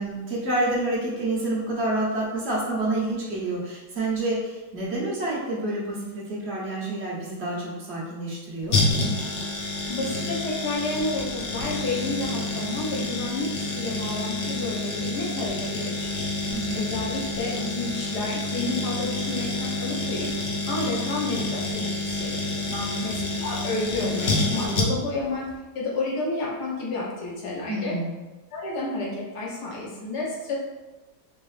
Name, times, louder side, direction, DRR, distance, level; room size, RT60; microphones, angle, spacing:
voice 1, 0.0-8.8 16.5-16.8 22.7-23.0 27.7-28.2, right 2 dB, 50° right, -4 dB, 1.0 m, -28 dB
sound 1, 8.7-25.2 25.5-25.6, left 2 dB, 55° left, 0.9 m, -28 dB
voice 2, 9.9-16.3 16.7-20.3 20.7-22.7 23.0-25.5 25.7-27.9 28.5-30.6, left 2 dB, 75° left, -4 dB, 1.5 m, -30 dB
4.0 x 2.9 x 3.2 m, 1.1 s
omnidirectional pair, 1.8 m